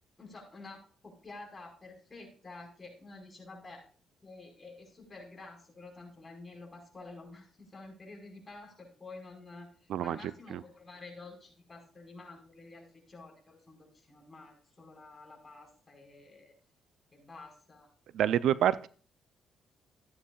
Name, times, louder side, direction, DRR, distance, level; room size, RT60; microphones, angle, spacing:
voice 1, 0.2-3.9 4.2-16.5 17.1-17.9, left 3 dB, 25° left, 0 dB, 4.9 m, -50 dB
voice 2, 18.1-18.9, right 10 dB, 75° right, 16 dB, 0.4 m, -27 dB
14.5 x 9.7 x 2.4 m, 0.41 s
cardioid pair, 90°, 0 cm